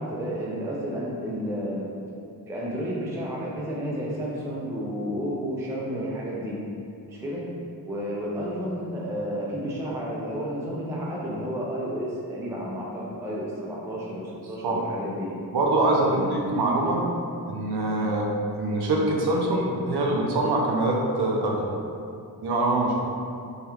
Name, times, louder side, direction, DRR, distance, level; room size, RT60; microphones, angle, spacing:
voice 1, 0.0-1.9 2.5-6.6 7.1-7.5 7.8-15.3 15.9-16.4 17.9-18.1, equal, 10° right, -5 dB, 0.3 m, -31 dB
voice 2, 15.5-17.0 17.5-18.2 18.5-21.7 22.4-23.0, right 2 dB, 80° right, -1 dB, 0.6 m, -24 dB
3.4 x 2.3 x 2.9 m, 2.5 s
wide cardioid pair, 155°, 38 cm